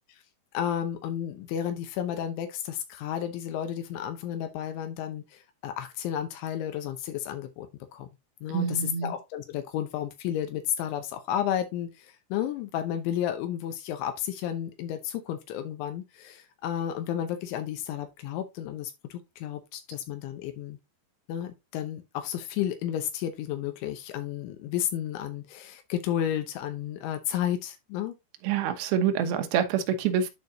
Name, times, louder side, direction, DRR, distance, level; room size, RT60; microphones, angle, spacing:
voice 1, 0.5-7.7 7.9-8.1 8.4-20.8 21.3-28.1, left 10 dB, 85° left, 3.2 m, -32 dB
voice 2, 8.5-9.1 28.4-30.3, right 8 dB, 70° right, 2.5 m, -26 dB
11.0 x 4.8 x 2.7 m
omnidirectional pair, 5.3 m